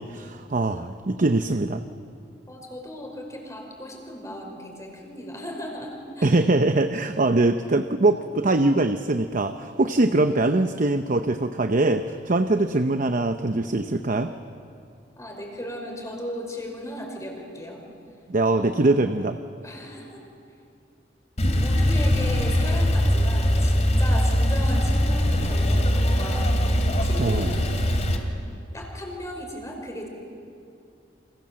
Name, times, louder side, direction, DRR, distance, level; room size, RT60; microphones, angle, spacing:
voice 1, 0.0-1.8 6.2-14.3 18.3-19.4 27.2-27.6, right 2 dB, 45° right, 8 dB, 0.8 m, -22 dB
voice 2, 2.5-6.3 10.2-10.4 15.2-17.8 18.5-19.1 19.6-20.2 21.5-26.5 27.0-27.7 28.7-30.1, equal, 20° left, 1 dB, 5.3 m, -36 dB
Male speech man speaking / Car / Idling, 21.4-28.2, equal, 40° left, 2.7 m, -21 dB
28.5 x 26.0 x 7.6 m, 2.5 s
head